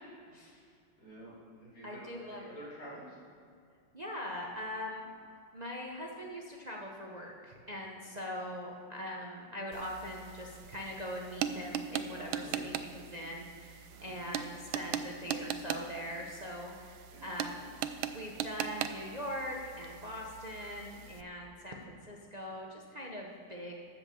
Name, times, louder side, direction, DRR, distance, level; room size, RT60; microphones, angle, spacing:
voice 1, 1.0-3.2 8.0-8.1 12.4-12.8 13.9-14.1 17.1-17.3, equal, 45° left, -8 dB, 3.7 m, -49 dB
voice 2, 1.8-2.4 3.9-5.1 5.5-17.7 18.1-23.8, equal, 45° right, -1 dB, 0.5 m, -42 dB
sound 1, 9.7-21.2, right 9 dB, 80° right, 1.4 m, -40 dB
13.5 x 5.9 x 7.0 m, 2.4 s
omnidirectional pair, 2.3 m